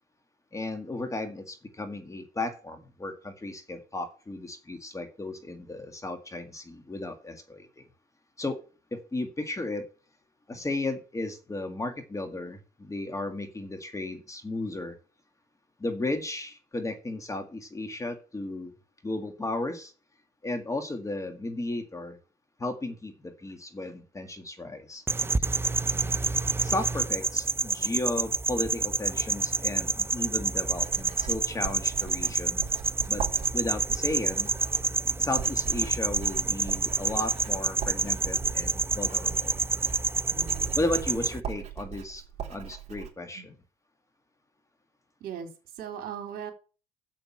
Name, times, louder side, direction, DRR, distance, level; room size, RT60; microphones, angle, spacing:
voice 1, 0.5-7.8 8.4-8.6 8.9-9.9 10.5-15.0 15.8-18.7 19.0-19.9 20.4-22.2 22.6-25.0 26.6-32.6 33.1-33.2 33.5-34.5 35.2-39.6 40.8-43.4, left 2 dB, 20° left, 7 dB, 1.9 m, -34 dB
sound 1, 25.1-41.4, right 3 dB, 15° right, 0.4 m, -28 dB
voice 2, 25.9-26.3 40.3-41.2 43.3-43.5 45.2-46.5, right 7 dB, 65° right, 4 dB, 3.9 m, -41 dB
Writing, 30.7-43.1, right 8 dB, 40° right, 3.8 m, -41 dB
7.7 x 7.5 x 7.6 m, 0.35 s
cardioid pair, 110°, 17 cm